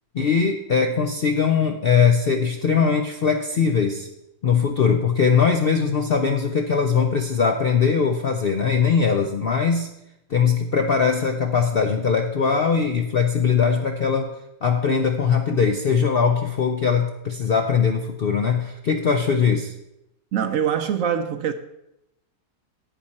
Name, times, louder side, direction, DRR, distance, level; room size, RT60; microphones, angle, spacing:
voice 1, 0.1-4.1 4.4-9.9 10.3-14.3 14.6-19.7, left 6 dB, 60° left, 5 dB, 0.6 m, -21 dB
voice 2, 20.3-21.5, right 8 dB, 65° right, 10 dB, 0.9 m, -23 dB
11.0 x 8.5 x 4.3 m, 0.86 s
omnidirectional pair, 1.7 m